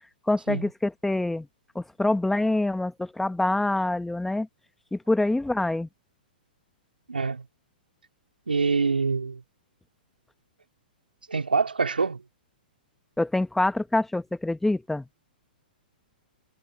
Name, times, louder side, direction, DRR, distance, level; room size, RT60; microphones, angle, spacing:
voice 1, 0.3-1.5 1.7-4.5 4.9-5.9 13.2-15.0, left 2 dB, 5° left, 1.5 m, -25 dB
voice 2, 7.1-7.5 8.5-9.4 11.3-12.2, right 4 dB, 85° right, 3.8 m, -25 dB
figure-of-eight pair, 115°, 5 cm